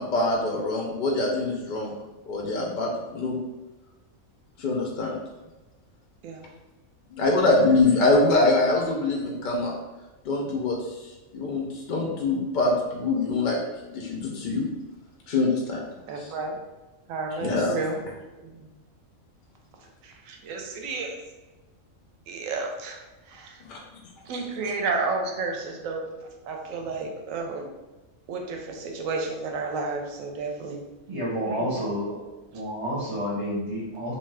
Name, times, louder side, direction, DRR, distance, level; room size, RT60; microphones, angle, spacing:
voice 1, 0.0-1.9 2.3-3.4 4.6-5.2 7.1-9.8 10.3-11.1 11.3-13.6 13.9-14.6 15.3-15.8 17.4-17.8 23.7-23.8, left 2 dB, 65° left, -1 dB, 0.5 m, -24 dB
voice 2, 16.0-16.6 17.1-18.0 18.4-18.7 19.8-21.2 22.3-23.6 24.2-27.7 28.3-30.8 31.5-31.6 32.5-32.6, right 3 dB, 85° right, 2 dB, 1.0 m, -32 dB
voice 3, 31.1-32.2 32.5-34.1, equal, 30° right, -6 dB, 0.7 m, -29 dB
2.6 x 2.2 x 3.2 m, 1.1 s
omnidirectional pair, 1.3 m